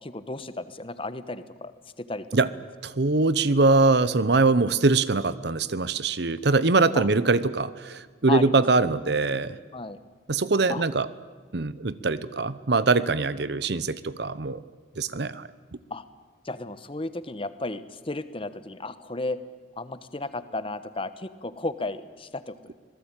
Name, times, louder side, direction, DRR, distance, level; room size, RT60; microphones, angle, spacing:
voice 1, 0.0-2.3 6.9-7.1 8.3-8.6 9.7-10.0 10.7-10.8 15.9-16.0 16.4-19.4 19.8-22.7, left 2 dB, 30° left, 13 dB, 1.1 m, -34 dB
voice 2, 2.8-9.6 10.3-11.1 11.5-14.6 15.0-15.5, right 3 dB, 60° right, 16 dB, 0.8 m, -23 dB
25.5 x 18.5 x 9.0 m, 1.4 s
head